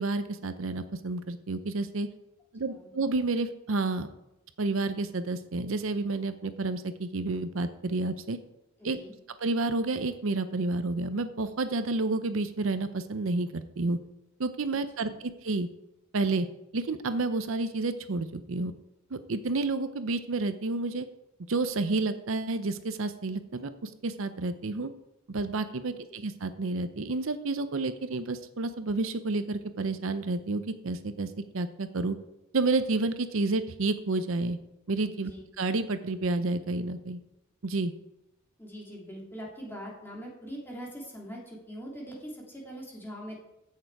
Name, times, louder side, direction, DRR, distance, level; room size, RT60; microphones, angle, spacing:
voice 1, 0.0-2.1 2.5-4.1 4.6-8.4 8.8-9.0 9.4-14.0 14.4-15.7 16.1-16.5 16.7-18.7 19.1-21.1 21.5-24.9 25.3-32.2 32.5-34.6 34.9-35.3 35.6-37.2 37.6-37.9, right 3 dB, 65° right, 11 dB, 0.6 m, -30 dB
voice 2, 8.8-9.1 15.0-15.2 35.2-35.4 38.6-43.3, equal, 10° left, -2 dB, 2.7 m, -42 dB
15.5 x 6.7 x 4.7 m, 0.89 s
head